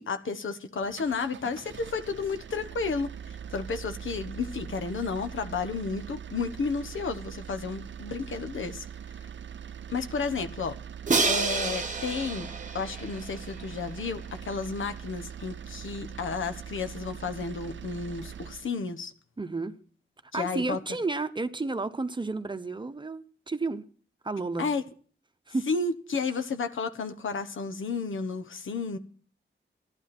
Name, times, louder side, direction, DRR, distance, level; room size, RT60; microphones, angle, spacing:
voice 1, 0.0-8.8 9.9-10.8 11.3-19.1 20.3-20.8 24.6-24.8 25.7-29.0, left 4 dB, 90° left, 1.3 m, -32 dB
sound 1, 0.8-18.7, right 8 dB, 75° right, 0.6 m, -42 dB
Crash cymbal, 11.1-14.0, right 4 dB, 40° right, 1.1 m, -29 dB
voice 2, 19.4-19.7 20.3-23.8 24.2-24.7 25.5-25.7, right 3 dB, 25° right, 0.9 m, -31 dB
15.0 x 11.5 x 4.3 m
wide cardioid pair, 115°, 20 cm